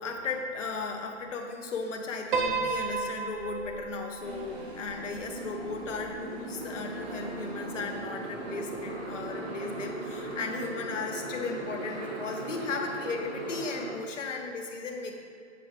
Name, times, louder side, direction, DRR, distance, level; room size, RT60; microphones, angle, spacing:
voice 1, 0.0-15.2, left 4 dB, 75° left, 2 dB, 1.2 m, -36 dB
Piano, 2.3-6.7, right 4 dB, 40° right, 0.8 m, -34 dB
Motorcycle, 4.2-13.9, right 2 dB, 60° right, 1.5 m, -38 dB
8.0 x 5.4 x 3.4 m, 2.3 s
hypercardioid pair, 145°, 37 cm